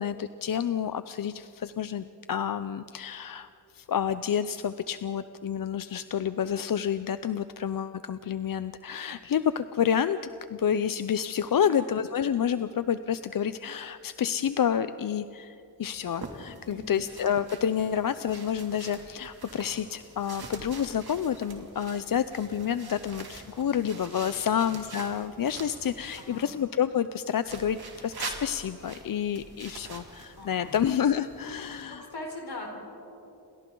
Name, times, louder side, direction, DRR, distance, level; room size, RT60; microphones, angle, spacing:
voice 1, 0.0-10.2 10.5-32.0, left 8 dB, 55° left, 12 dB, 0.5 m, -29 dB
voice 2, 11.5-11.9 16.6-17.1 24.2-24.6 26.2-26.6 30.3-30.9 31.6-32.7, left 2 dB, 75° left, 0 dB, 4.5 m, -42 dB
sound 1, 15.8-26.4 27.4-31.8, right 4 dB, 65° right, 2.6 m, -45 dB
29.0 x 26.5 x 3.8 m, 2.9 s
wide cardioid pair, 115°, 40 cm